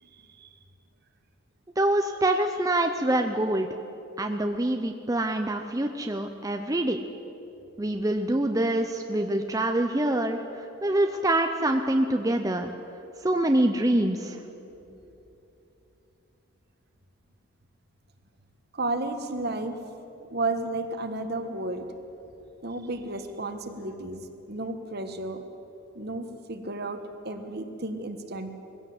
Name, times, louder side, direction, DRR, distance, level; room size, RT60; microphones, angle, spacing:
voice 1, 0.0-0.5 18.7-19.7 20.3-21.9 22.6-25.4 25.9-28.6, right 2 dB, 50° right, 7 dB, 1.4 m, -33 dB
voice 2, 1.8-3.7 4.2-7.0 7.8-12.7 13.2-14.4, right 1 dB, 15° right, 5 dB, 0.7 m, -25 dB
21.0 x 16.0 x 7.9 m, 3.0 s
head